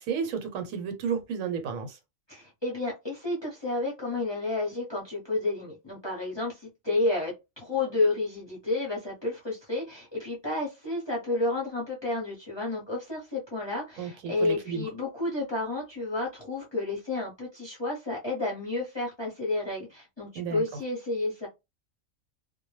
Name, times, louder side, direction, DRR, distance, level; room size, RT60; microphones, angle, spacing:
voice 1, 0.0-2.0 14.0-14.8 20.4-20.6, right 6 dB, 85° right, 1.1 m, -32 dB
voice 2, 2.3-21.5, left 2 dB, 25° left, 0.6 m, -31 dB
2.2 x 2.0 x 3.1 m
omnidirectional pair, 1.4 m